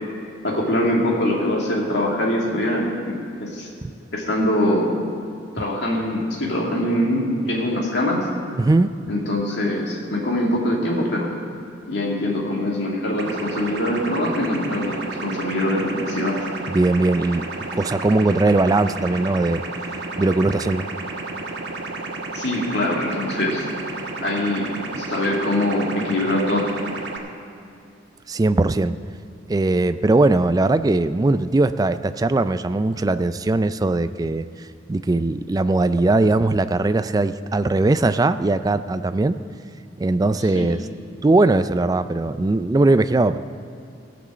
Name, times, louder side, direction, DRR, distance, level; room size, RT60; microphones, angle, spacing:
voice 1, 0.4-3.7 4.1-4.9 5.6-8.3 9.1-11.3 11.9-16.4 22.3-23.6 24.2-24.7 25.0-26.7 40.5-40.7, left 1 dB, 65° left, -2 dB, 2.5 m, -23 dB
voice 2, 8.6-8.9 16.7-17.5 17.7-19.6 20.2-20.8 28.3-28.9 29.5-34.5 34.9-39.4 40.0-40.9 41.2-43.4, right 2 dB, 20° right, 12 dB, 0.3 m, -19 dB
sound 1, 13.2-27.2, right 3 dB, 65° right, 1.3 m, -32 dB
17.0 x 6.1 x 7.5 m, 2.5 s
head